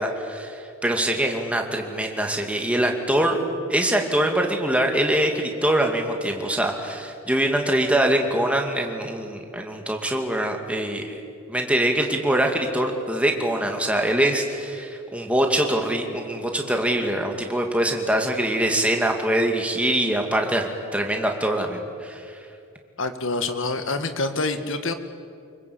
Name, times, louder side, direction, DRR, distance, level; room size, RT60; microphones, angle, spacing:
voice 1, 0.0-3.4 3.7-11.2 11.5-22.2, right 1 dB, 5° right, 2 dB, 2.3 m, -23 dB
voice 2, 23.0-24.9, left 3 dB, 60° left, 8 dB, 1.9 m, -26 dB
25.5 x 23.0 x 8.6 m, 2.5 s
head